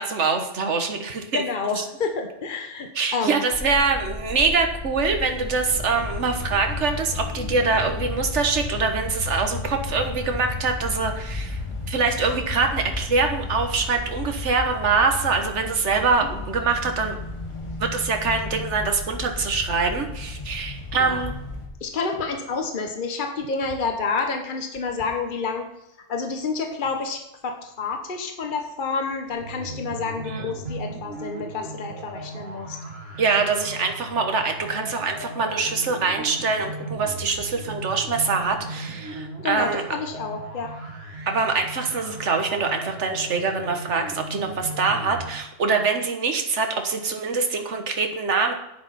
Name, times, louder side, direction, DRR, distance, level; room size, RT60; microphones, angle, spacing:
voice 1, 0.0-1.4 1.8-1.9 2.9-11.6 11.9-17.2 17.8-21.3 30.2-30.5 33.2-39.8 41.3-48.5, right 4 dB, 70° right, 5 dB, 1.6 m, -24 dB
voice 2, 1.3-3.4 17.5-17.6 21.0-21.3 21.8-25.6 26.1-32.8 39.4-40.7, left 4 dB, 45° left, 4 dB, 1.3 m, -29 dB
sound 1, 3.5-21.7, left 3 dB, 25° left, 1.7 m, -33 dB
sound 2, 29.3-45.3, right 1 dB, 55° right, 2.6 m, -37 dB
11.5 x 10.5 x 4.2 m, 0.90 s
omnidirectional pair, 1.3 m